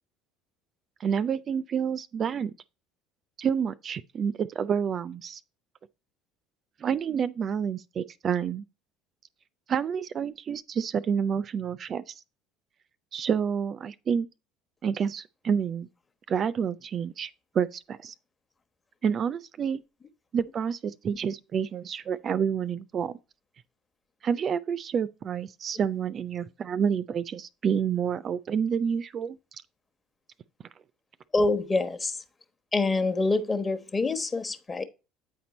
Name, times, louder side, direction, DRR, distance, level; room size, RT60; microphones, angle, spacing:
voice 1, 1.0-2.5 3.4-5.4 6.8-8.6 9.7-12.1 13.1-14.3 14.8-15.9 16.3-17.3 17.5-18.1 19.0-19.8 20.3-23.2 24.2-29.4, right 7 dB, 45° right, 0.4 m, -28 dB
voice 2, 31.3-32.2 32.7-34.8, left 3 dB, 25° left, 1.0 m, -26 dB
8.5 x 4.4 x 4.1 m
hypercardioid pair, 65°, 0 cm